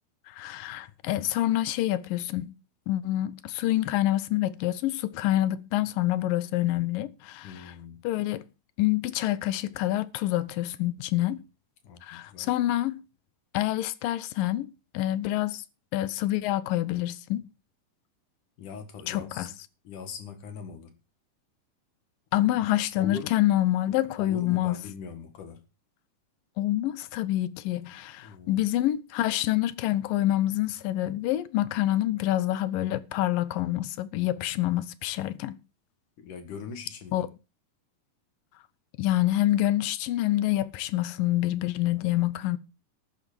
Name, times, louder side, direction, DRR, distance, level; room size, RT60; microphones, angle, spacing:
voice 1, 0.3-2.6 2.9-7.5 8.0-8.4 8.8-11.4 12.0-13.0 13.5-15.6 15.9-17.4 19.1-19.5 22.3-24.8 26.6-35.6 37.1-37.3 39.0-42.6, left 14 dB, 80° left, 2.5 m, -27 dB
voice 2, 7.4-8.0 11.8-12.5 18.6-19.5 19.8-21.0 22.3-22.7 23.0-23.3 24.2-25.7 28.2-28.6 34.5-34.6 36.2-37.3 41.8-42.3, left 6 dB, 65° left, 3.2 m, -41 dB
13.5 x 9.3 x 4.6 m
omnidirectional pair, 4.0 m